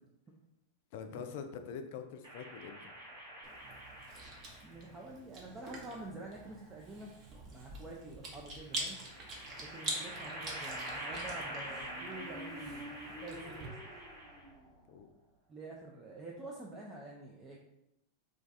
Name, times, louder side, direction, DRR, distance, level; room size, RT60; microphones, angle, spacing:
voice 1, 0.9-2.8 14.9-15.1, left 6 dB, 60° left, 7 dB, 0.4 m, -44 dB
sound 1, 2.2-4.9 6.0-7.0 8.6-14.6, right 1 dB, 65° right, 1.2 m, -46 dB
Chewing mastication, 3.4-13.7, right 2 dB, 40° right, 0.8 m, -45 dB
voice 2, 4.5-7.1 7.5-9.0 9.6-12.9 13.2-13.9 15.5-17.6, right 2 dB, 20° right, -3 dB, 0.5 m, -48 dB
Motorcycle, 11.2-14.9, equal, 5° left, 0.8 m, -50 dB
2.4 x 2.3 x 3.9 m, 0.84 s
hypercardioid pair, 100°, 0 cm